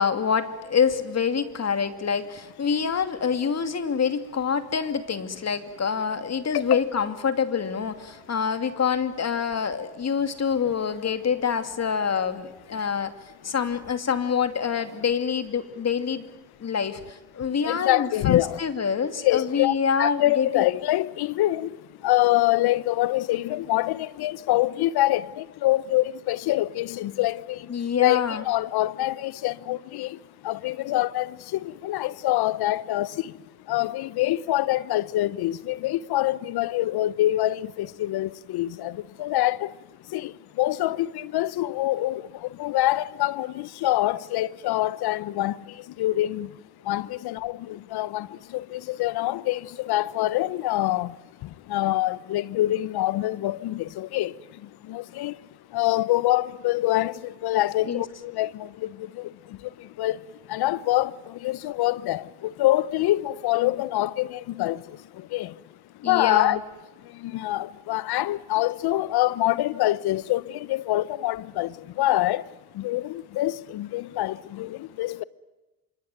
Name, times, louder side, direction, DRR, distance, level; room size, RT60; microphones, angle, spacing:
voice 1, 0.0-13.1 13.4-16.3 16.6-20.6 27.7-28.4 57.9-58.0 66.0-66.6, left 6 dB, 35° left, 2.6 m, -26 dB
voice 2, 17.4-18.6 19.2-55.4 55.7-66.6 67.0-75.2, left 15 dB, 60° left, 1.0 m, -26 dB
26.0 x 24.0 x 9.2 m
supercardioid pair, 75°, 42 cm